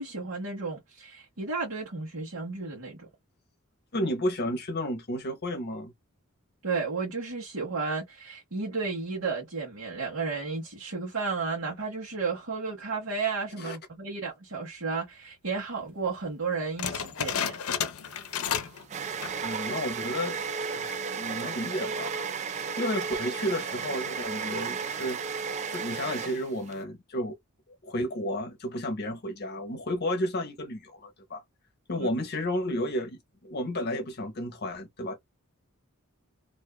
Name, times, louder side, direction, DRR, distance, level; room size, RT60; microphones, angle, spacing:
voice 1, 0.0-3.1 6.6-17.6 32.0-32.1, right 4 dB, 70° right, 1.1 m, -33 dB
voice 2, 3.9-5.9 13.6-13.8 19.4-22.2 22.8-27.4 27.8-31.4 31.9-35.2, equal, 50° left, 0.8 m, -32 dB
sound 1, 16.8-18.8 19.1-19.5 20.0-20.1 20.7-21.1, left 8 dB, 75° left, 0.6 m, -32 dB
sound 2, 18.1-26.8, right 6 dB, 35° right, 0.3 m, -34 dB
2.6 x 2.4 x 2.2 m
head